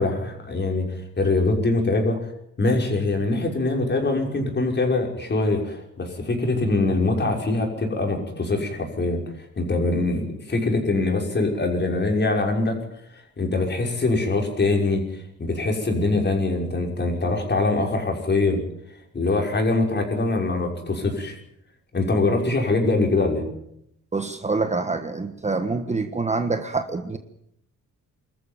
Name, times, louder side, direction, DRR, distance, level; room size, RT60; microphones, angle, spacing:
voice 1, 0.0-2.2 2.6-9.2 9.6-12.8 13.4-18.6 19.1-21.4 21.9-23.5, left 2 dB, 35° left, 2 dB, 5.9 m, -23 dB
voice 2, 24.1-27.2, right 3 dB, 20° right, 7 dB, 1.5 m, -26 dB
25.0 x 14.0 x 9.1 m, 0.76 s
cardioid pair, 120°, 32 cm